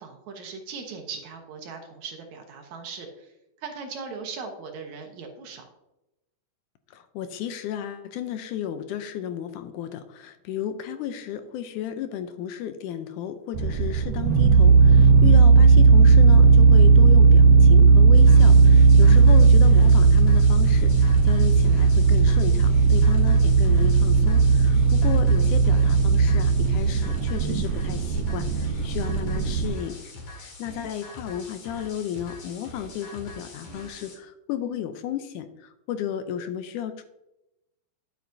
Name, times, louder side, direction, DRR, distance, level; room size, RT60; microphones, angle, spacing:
voice 1, 0.0-3.3 3.6-5.6, right 5 dB, 70° right, 3 dB, 2.3 m, -39 dB
voice 2, 6.9-30.1 30.4-37.0, left 10 dB, 80° left, 10 dB, 2.0 m, -33 dB
sound 1, 13.5-29.7, right 4 dB, 90° right, 2.5 m, -16 dB
sound 2, 18.1-34.1, left 2 dB, 60° left, 3.3 m, -43 dB
10.5 x 7.9 x 2.6 m, 0.90 s
omnidirectional pair, 3.7 m